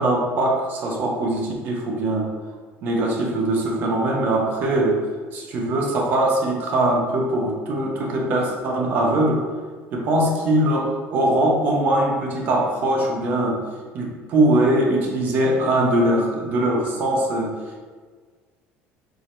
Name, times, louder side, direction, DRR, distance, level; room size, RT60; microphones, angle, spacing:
voice 1, 0.0-2.3 2.8-5.0 5.3-9.4 9.9-13.6 13.9-17.5, right 1 dB, 45° right, 0 dB, 0.7 m, -21 dB
4.6 x 2.8 x 3.1 m, 1.5 s
cardioid pair, 170°, 4 cm